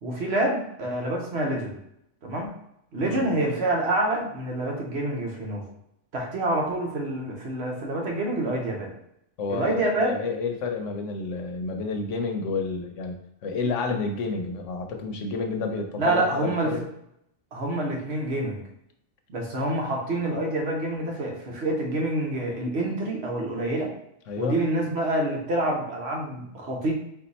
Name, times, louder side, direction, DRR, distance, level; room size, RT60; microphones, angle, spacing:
voice 1, 0.0-1.8 2.2-2.5 2.9-5.7 6.1-8.9 9.5-10.1 16.0-16.7 17.5-18.6 19.3-23.9 24.4-26.9, right 1 dB, 60° right, 0 dB, 1.1 m, -27 dB
voice 2, 9.4-16.8 24.3-24.6, left 4 dB, 80° left, 5 dB, 1.0 m, -30 dB
4.4 x 2.5 x 4.0 m, 0.78 s
omnidirectional pair, 1.3 m